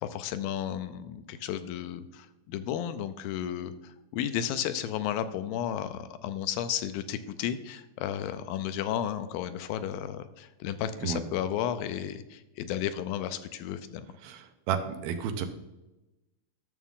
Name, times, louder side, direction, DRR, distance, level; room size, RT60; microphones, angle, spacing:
voice 1, 0.0-14.1, left 10 dB, 80° left, 11 dB, 2.4 m, -33 dB
voice 2, 14.2-15.5, right 7 dB, 85° right, 7 dB, 2.7 m, -32 dB
11.0 x 7.0 x 3.7 m, 1.0 s
omnidirectional pair, 4.2 m